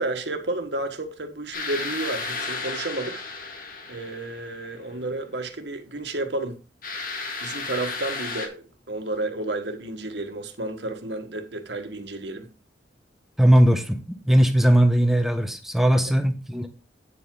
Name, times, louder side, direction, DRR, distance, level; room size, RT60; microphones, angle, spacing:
voice 1, 0.0-3.2 3.9-6.6 7.4-12.5, right 2 dB, 75° right, 1.5 m, -31 dB
sound 1, 1.5-4.8 6.8-8.5, left 3 dB, 55° left, 2.0 m, -33 dB
voice 2, 13.4-14.0 14.3-16.7, equal, ahead, 1.1 m, -19 dB
9.2 x 7.5 x 3.9 m
head